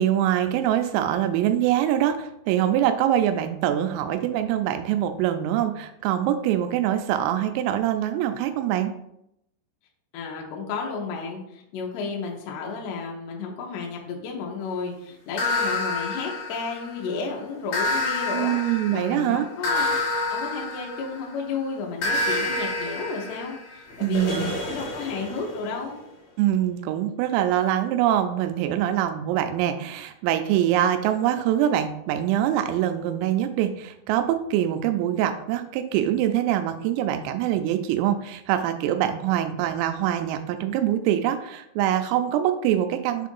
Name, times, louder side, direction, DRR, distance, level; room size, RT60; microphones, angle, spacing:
voice 1, 0.0-8.9 18.3-19.5 24.0-24.5 26.4-43.3, right 11 dB, 90° right, 8 dB, 3.2 m, -24 dB
voice 2, 10.1-20.0 20.3-26.0, left 4 dB, 80° left, -1 dB, 2.4 m, -32 dB
sound 1, 15.4-17.1 17.7-21.4 22.0-25.7, left 2 dB, 60° left, 1.7 m, -28 dB
7.3 x 2.5 x 5.3 m, 0.78 s
omnidirectional pair, 5.8 m